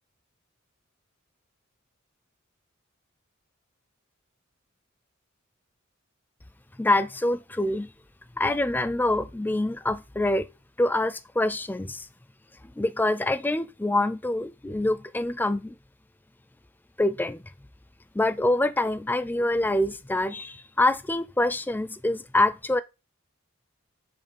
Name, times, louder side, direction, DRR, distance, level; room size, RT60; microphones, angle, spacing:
voice 1, 6.8-7.9 8.4-10.5 10.8-12.1 12.8-15.8 17.0-17.4 18.1-22.8, left 2 dB, 10° left, 0.4 m, -25 dB
6.5 x 3.5 x 5.1 m
head